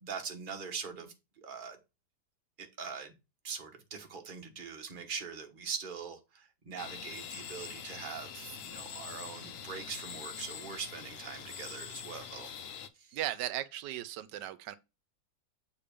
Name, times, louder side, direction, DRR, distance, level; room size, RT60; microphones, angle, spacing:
voice 1, 0.0-1.8 2.6-3.2 3.4-12.5 12.9-13.2, right 5 dB, 35° right, 1.1 m, -42 dB
sound 1, 6.8-12.9, left 8 dB, 70° left, 0.5 m, -44 dB
voice 2, 13.1-14.8, right 13 dB, 90° right, 1.3 m, -36 dB
6.9 x 3.2 x 5.0 m
omnidirectional pair, 1.8 m